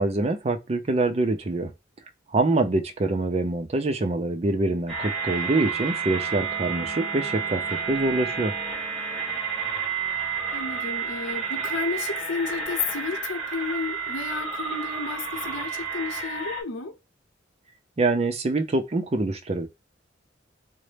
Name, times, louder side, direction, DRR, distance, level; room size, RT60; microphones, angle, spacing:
voice 1, 0.0-1.7 2.3-8.6 18.0-19.7, right 2 dB, 35° right, 0.5 m, -25 dB
sound 1, 4.9-16.6, right 5 dB, ahead, 1.2 m, -30 dB
voice 2, 10.5-17.0, left 4 dB, 80° left, 0.7 m, -32 dB
3.9 x 2.1 x 3.3 m
head